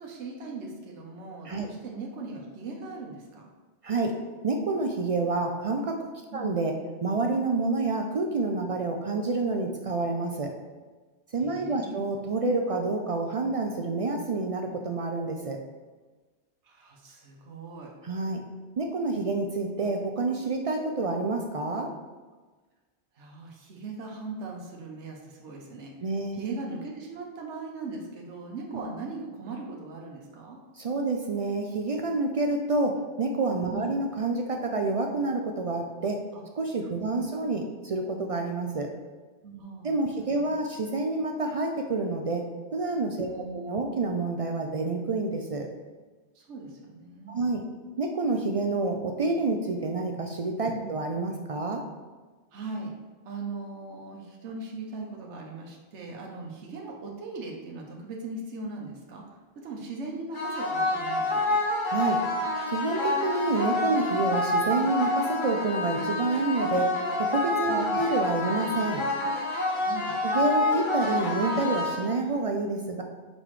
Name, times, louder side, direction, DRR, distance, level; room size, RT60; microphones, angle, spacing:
voice 1, 0.0-3.4 6.3-6.5 11.4-12.0 16.6-17.9 23.2-25.9 26.3-30.6 33.7-33.9 36.3-36.4 37.0-37.3 39.4-40.5 43.3-43.7 46.3-47.4 50.7-50.9 52.5-52.9 53.2-59.2 59.6-61.6 67.7-68.0 69.7-70.1, right 3 dB, 80° right, 0 dB, 1.2 m, -39 dB
voice 2, 3.8-4.1 4.4-6.7 7.0-10.5 11.3-15.6 18.0-18.4 18.8-21.9 26.0-26.4 28.7-28.8 30.8-36.2 36.5-38.9 39.8-42.4 42.7-43.3 43.5-45.7 47.3-47.6 48.0-51.8 61.9-62.2 62.7-66.9 67.2-69.0 70.2-73.0, right 3 dB, 60° right, 3 dB, 0.3 m, -28 dB
sound 1, 60.3-72.3, left 2 dB, 50° left, 1.1 m, -28 dB
5.8 x 5.1 x 3.1 m, 1.3 s
omnidirectional pair, 1.2 m